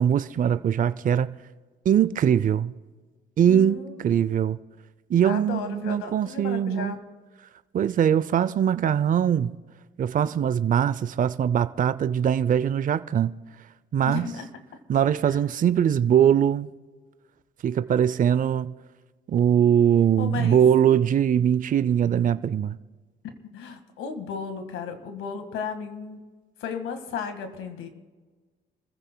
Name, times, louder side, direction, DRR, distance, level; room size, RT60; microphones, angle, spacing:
voice 1, 0.0-1.3 1.9-2.7 3.4-4.6 5.1-6.9 7.7-9.5 10.0-13.3 13.9-14.3 14.9-16.7 17.6-18.7 19.3-22.8, right 9 dB, 45° right, 0.5 m, -22 dB
voice 2, 3.5-4.2 5.2-7.0 14.0-14.5 15.2-15.4 20.2-20.6 23.2-26.2 26.6-27.9, left 6 dB, 90° left, 1.8 m, -34 dB
27.5 x 15.0 x 2.2 m
cardioid pair, 90°, 20 cm